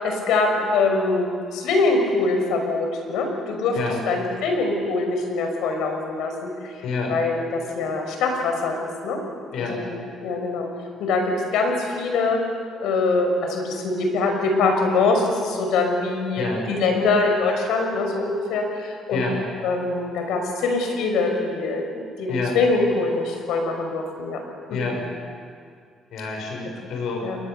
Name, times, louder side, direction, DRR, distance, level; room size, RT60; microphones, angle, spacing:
voice 1, 0.0-3.8 4.1-6.5 7.1-9.2 9.6-10.7 11.0-12.4 12.8-19.2 19.6-21.8 22.2-24.4 24.7-24.9 27.2-27.4, left 3 dB, 85° left, 3 dB, 5.8 m, -23 dB
voice 2, 6.8-7.2 9.5-9.8 16.3-16.6 19.1-19.4 22.3-22.6 24.7-25.0 26.1-27.3, left 4 dB, 65° left, 1 dB, 6.9 m, -28 dB
30.0 x 22.0 x 6.9 m, 2.2 s
cardioid pair, 175°, 0 cm